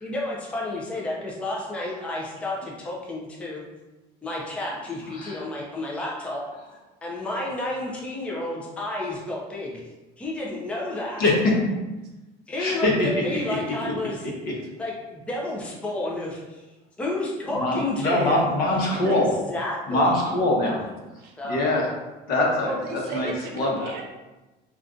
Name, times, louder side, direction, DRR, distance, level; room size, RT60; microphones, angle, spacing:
voice 1, 0.0-3.6 4.2-6.4 7.0-9.8 10.2-11.2 12.5-14.3 14.8-16.6 17.0-18.4 19.1-19.2 19.5-20.1 21.4-21.7, left 2 dB, 5° left, -3 dB, 0.4 m, -31 dB
voice 2, 11.2-11.5 12.6-13.6 14.2-14.3 17.5-19.3 19.9-20.8 21.5-21.9 22.3-22.7 23.1-23.3 23.6-23.9, left 1 dB, 55° left, -2 dB, 0.8 m, -23 dB
voice 3, 20.6-21.3 22.7-24.0, right 3 dB, 60° right, 1 dB, 0.7 m, -35 dB
2.5 x 2.3 x 3.6 m, 1.1 s
cardioid pair, 140°, 18 cm